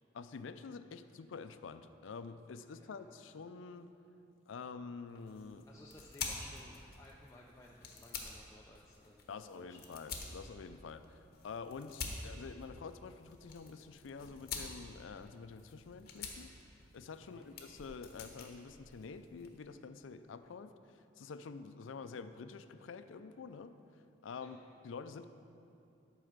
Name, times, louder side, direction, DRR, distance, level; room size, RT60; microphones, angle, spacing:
voice 1, 0.1-3.9 4.5-5.7 9.3-16.5 16.9-23.8 24.2-25.3, left 5 dB, 90° left, 11 dB, 0.4 m, -48 dB
sound 1, 5.1-19.6, left 4 dB, 50° left, 1.1 m, -48 dB
voice 2, 5.6-9.3 9.5-9.8 17.2-17.5 24.4-24.6, left 2 dB, 15° left, -3 dB, 0.5 m, -58 dB
11.0 x 4.8 x 6.6 m, 2.7 s
head